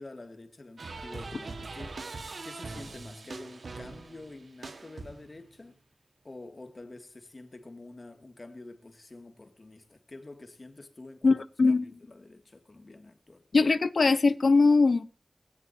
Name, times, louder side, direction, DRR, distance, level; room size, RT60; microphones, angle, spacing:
voice 1, 0.0-2.0 2.4-5.8 6.2-11.4 11.7-13.5, left 2 dB, 45° left, 2.4 m, -47 dB
sound 1, 0.8-5.5, right 3 dB, 85° right, 1.7 m, -42 dB
voice 2, 11.2-11.9 13.5-15.1, left 3 dB, 80° left, 0.8 m, -22 dB
21.5 x 16.5 x 2.8 m
wide cardioid pair, 85°, 0 cm